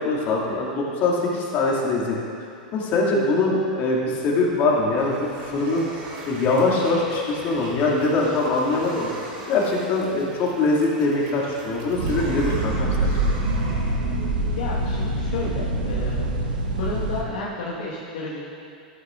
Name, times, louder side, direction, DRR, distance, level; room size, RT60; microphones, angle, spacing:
voice 1, 0.0-2.2 2.7-9.1 9.5-13.1, left 2 dB, 45° left, -4 dB, 2.4 m, -23 dB
sound 1, 4.3-14.3, right 2 dB, 60° right, 2.1 m, -40 dB
sound 2, 12.0-17.2, right 2 dB, 80° right, 1.1 m, -25 dB
voice 2, 14.5-16.3 16.8-18.5, left 3 dB, 70° left, -5 dB, 1.6 m, -32 dB
13.0 x 11.5 x 2.6 m, 2.5 s
hypercardioid pair, 100°, 5 cm